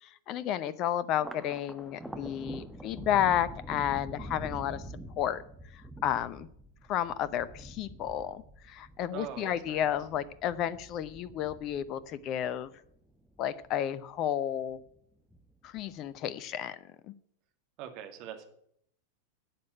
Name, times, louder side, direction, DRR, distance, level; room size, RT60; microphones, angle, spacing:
voice 1, 0.0-4.8 5.2-5.4 5.7-6.5 6.9-12.7 13.4-14.8 15.6-16.8 17.1-17.2, left 10 dB, 35° left, 17 dB, 0.8 m, -32 dB
Thunder, 1.1-13.8 14.2-15.0 15.3-16.2, right 1 dB, ahead, 1.2 m, -46 dB
voice 2, 9.1-9.9 17.8-18.5, right 10 dB, 40° right, 5 dB, 2.4 m, -42 dB
12.0 x 8.5 x 9.1 m, 0.68 s
figure-of-eight pair, 90°, 0 cm